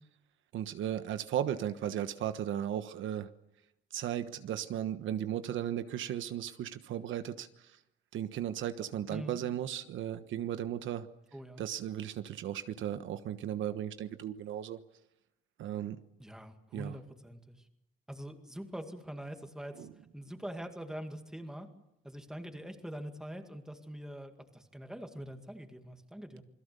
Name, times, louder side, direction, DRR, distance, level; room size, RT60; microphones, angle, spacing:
voice 1, 0.5-3.3 3.9-7.5 8.1-11.1 11.6-14.8 15.6-16.0 16.7-16.9 19.8-19.9, right 10 dB, 75° right, 10 dB, 1.3 m, -36 dB
voice 2, 9.1-9.4 11.3-11.7 16.2-17.7 18.1-19.9 20.1-21.7 22.0-26.4, right 1 dB, 5° right, 5 dB, 2.1 m, -44 dB
27.5 x 22.0 x 6.9 m, 0.86 s
cardioid pair, 175°, 20 cm